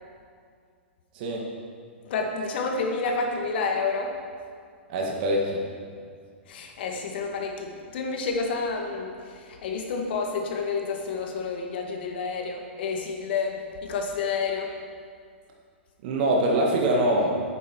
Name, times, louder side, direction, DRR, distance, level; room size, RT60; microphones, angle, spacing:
voice 1, 2.0-4.2 6.5-14.7, left 4 dB, 55° left, 2 dB, 1.9 m, -29 dB
voice 2, 4.9-5.6 16.0-17.6, right 1 dB, 50° right, -1 dB, 1.8 m, -24 dB
11.0 x 9.0 x 4.7 m, 2.2 s
hypercardioid pair, 115°, 6 cm